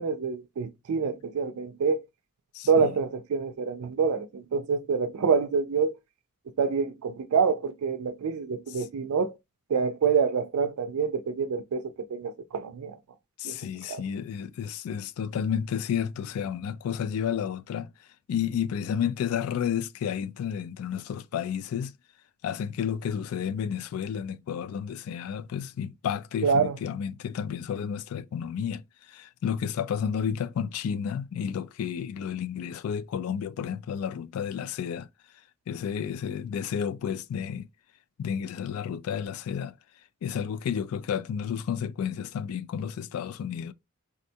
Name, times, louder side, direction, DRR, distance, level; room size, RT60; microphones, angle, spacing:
voice 1, 0.0-2.0 2.7-5.9 6.6-9.3 9.7-13.0 13.4-13.6 13.9-14.0 26.4-26.8, right 5 dB, 85° right, 0.4 m, -26 dB
voice 2, 2.5-2.9 8.7-8.9 13.4-17.9 18.3-21.9 22.4-35.1 35.7-37.7 38.2-39.7 40.2-43.7, left 8 dB, 80° left, 0.3 m, -31 dB
3.5 x 2.2 x 2.7 m
head